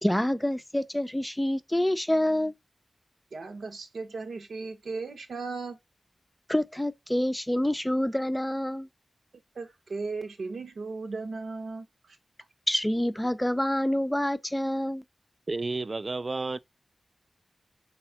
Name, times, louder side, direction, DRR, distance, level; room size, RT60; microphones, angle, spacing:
voice 1, 0.0-2.5 6.5-8.9 12.7-15.0, left 1 dB, 10° left, 0.6 m, -27 dB
voice 2, 3.3-5.8 9.5-11.9, right 4 dB, 85° right, 1.3 m, -36 dB
voice 3, 15.5-16.6, right 3 dB, 40° right, 0.4 m, -31 dB
4.6 x 4.2 x 5.8 m
wide cardioid pair, 105°, 0 cm